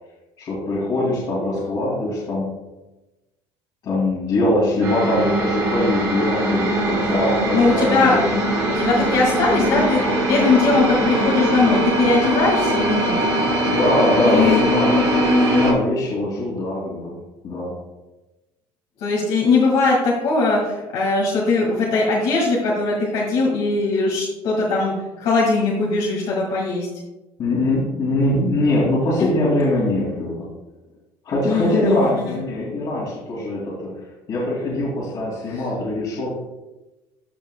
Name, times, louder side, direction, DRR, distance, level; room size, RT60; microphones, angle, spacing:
voice 1, 0.4-2.5 3.8-8.4 13.6-15.0 15.4-17.2 17.4-17.8 27.4-30.5 31.2-33.9 34.3-36.4, left 1 dB, 45° left, -7 dB, 2.4 m, -22 dB
sound 1, 4.8-15.7, right 1 dB, 35° right, 2.7 m, -21 dB
voice 2, 7.5-8.2 8.7-13.1 14.1-14.6 19.0-26.9 29.2-29.3 31.5-32.4 35.5-35.7, left 3 dB, 65° left, -5 dB, 1.9 m, -20 dB
13.5 x 5.4 x 2.2 m, 1.1 s
cardioid pair, 145°, 10 cm